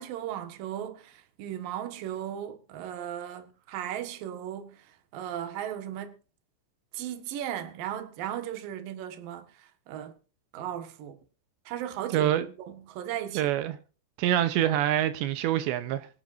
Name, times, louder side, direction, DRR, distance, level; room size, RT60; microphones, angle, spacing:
voice 1, 0.0-4.8 5.1-6.1 6.9-9.5 9.9-10.1 10.5-11.2 11.7-12.3 12.6-13.5, right 11 dB, 60° right, 2.7 m, -36 dB
voice 2, 12.1-12.5 13.4-13.8 14.2-16.1, right 12 dB, 80° right, 2.8 m, -25 dB
25.0 x 9.2 x 2.6 m
omnidirectional pair, 5.5 m